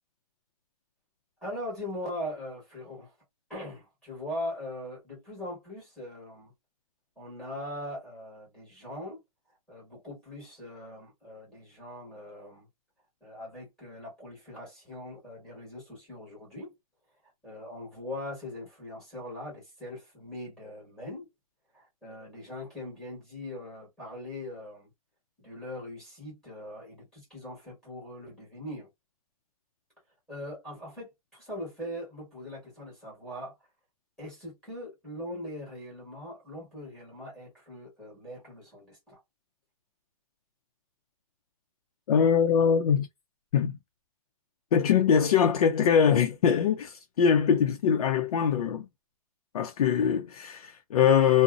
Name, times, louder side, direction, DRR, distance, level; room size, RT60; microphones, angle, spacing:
voice 1, 1.4-3.1 3.5-6.5 7.2-9.2 9.7-12.7 13.2-16.7 17.4-21.3 21.7-24.9 25.4-28.9 30.3-33.5 34.2-39.2, left 1 dB, 5° left, 1.4 m, -41 dB
voice 2, 42.1-43.1 43.5-43.8 44.7-48.9 49.5-51.4, left 7 dB, 75° left, 0.5 m, -23 dB
2.6 x 2.0 x 2.4 m
hypercardioid pair, 160°, 19 cm